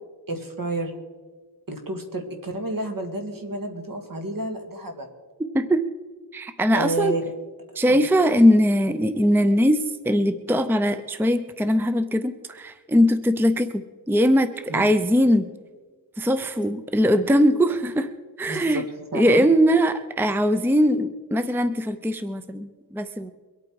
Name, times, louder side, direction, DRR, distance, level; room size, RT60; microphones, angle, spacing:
voice 1, 0.3-0.9 1.7-5.1 6.7-7.3 7.9-8.0 14.7-14.9 18.5-18.8 19.1-19.5, right 1 dB, 55° right, 4 dB, 2.2 m, -30 dB
voice 2, 6.3-7.1 7.8-15.5 16.2-18.1 18.4-18.8 19.1-23.3, equal, 5° right, 10 dB, 0.6 m, -21 dB
23.5 x 8.7 x 4.7 m, 1.4 s
wide cardioid pair, 100°, 40 cm